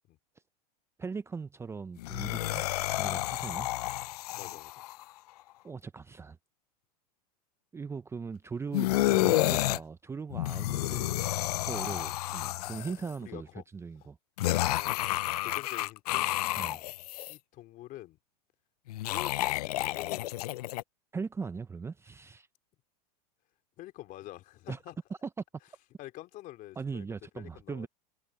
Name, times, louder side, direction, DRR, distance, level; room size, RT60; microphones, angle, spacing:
voice 1, 1.0-2.6 2.9-3.7 5.6-6.4 7.7-11.2 11.6-13.5 13.7-14.2 16.6-16.8 21.1-22.5 24.7-24.8 25.2-25.3 26.8-27.9, right 5 dB, 15° right, 0.6 m, -39 dB
sound 1, 2.0-5.0 8.7-9.8 10.3-13.1 14.4-17.3 18.9-20.8, left 16 dB, 75° left, 0.5 m, -30 dB
voice 2, 4.4-4.8 12.9-13.0 13.2-13.6 14.6-15.1 15.4-16.3 17.3-18.2 18.9-20.5 23.8-25.0 26.0-27.1 27.3-27.9, left 16 dB, 45° left, 3.2 m, -46 dB
hypercardioid pair, 115°, 20 cm